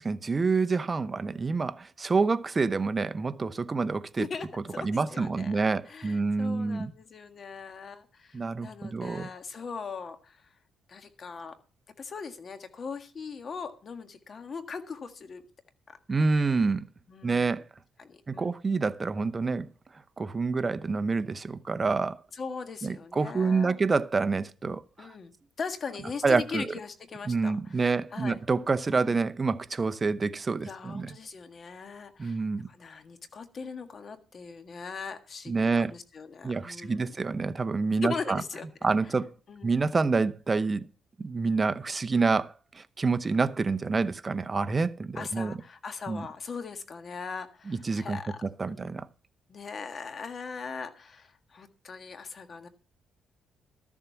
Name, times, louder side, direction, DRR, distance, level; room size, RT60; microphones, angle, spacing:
voice 1, 0.0-4.3 4.8-6.9 8.3-9.3 16.1-16.9 17.2-17.6 18.3-19.7 20.2-22.2 22.8-25.1 26.2-26.7 27.3-31.1 32.2-32.7 35.5-35.9 36.4-38.4 38.8-39.3 39.6-40.9 41.2-45.6 46.1-46.3 47.7-48.2 48.6-49.1, right 4 dB, 30° right, 0.7 m, -27 dB
voice 2, 1.0-1.4 4.2-5.6 5.9-10.5 10.9-11.6 12.0-15.4 15.9-16.2 17.1-17.6 18.0-18.5 22.3-23.8 25.0-28.4 28.9-29.2 30.6-37.0 38.0-38.7 39.5-39.7 45.1-48.9 49.5-52.7, left 5 dB, 45° left, 1.6 m, -40 dB
13.0 x 7.3 x 5.8 m
cardioid pair, 90°, 0 cm